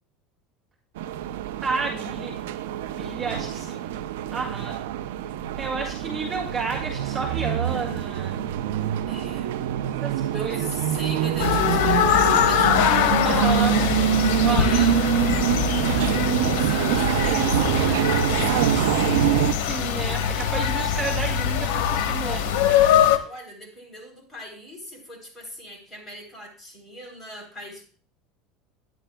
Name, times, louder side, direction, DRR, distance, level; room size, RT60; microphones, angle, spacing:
sound 1, 1.0-19.5, right 11 dB, 85° right, 0.5 m, -25 dB
voice 1, 1.6-2.3 2.9-3.8 4.3-4.8 5.6-8.4 10.0-10.7 13.2-13.8 14.4-14.7 16.1-16.5 19.6-22.4, right 4 dB, 30° right, -1 dB, 1.7 m, -31 dB
voice 2, 9.1-9.5 10.3-13.7 14.3-15.0 15.9-19.6 23.2-27.8, left 1 dB, 15° left, -1 dB, 3.4 m, -40 dB
sound 2, 11.4-23.2, left 9 dB, 75° left, 0.9 m, -23 dB
Applause, 16.1-21.6, equal, 5° right, 2.9 m, -47 dB
11.0 x 10.0 x 2.2 m, 0.42 s
supercardioid pair, 125°, 0 cm